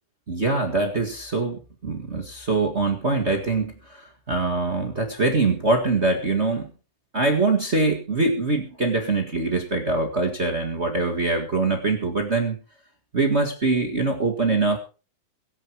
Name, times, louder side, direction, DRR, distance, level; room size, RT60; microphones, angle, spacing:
voice 1, 0.3-6.7 7.1-12.6 13.1-14.8, right 3 dB, 35° right, 4 dB, 1.0 m, -23 dB
23.0 x 7.8 x 4.6 m, 0.34 s
omnidirectional pair, 4.2 m